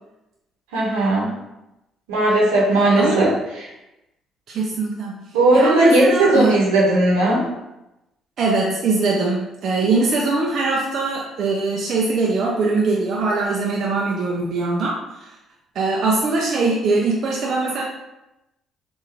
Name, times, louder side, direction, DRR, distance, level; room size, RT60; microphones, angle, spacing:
voice 1, 0.7-1.3 2.1-3.3 5.3-7.5, right 1 dB, 90° right, -4 dB, 1.0 m, -17 dB
voice 2, 3.0-3.3 4.5-5.2 5.5-6.6 8.4-15.3 15.7-17.8, right 3 dB, 60° right, -2 dB, 0.5 m, -22 dB
3.7 x 2.5 x 3.3 m, 0.94 s
hypercardioid pair, 60°, 0 cm